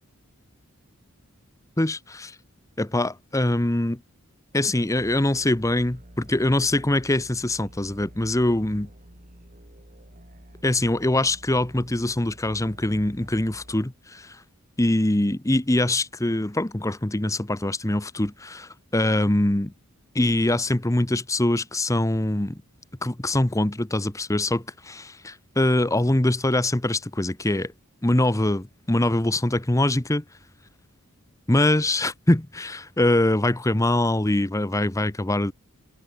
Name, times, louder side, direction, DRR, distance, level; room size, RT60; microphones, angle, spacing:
voice 1, 1.8-2.4 2.8-4.0 4.5-8.9 10.6-14.4 14.8-19.7 20.1-22.6 23.0-27.7 28.0-30.2 31.5-35.5, left 1 dB, 15° left, 0.9 m, -23 dB
sound 1, 5.0-13.8, right 1 dB, 35° right, 3.6 m, -48 dB
head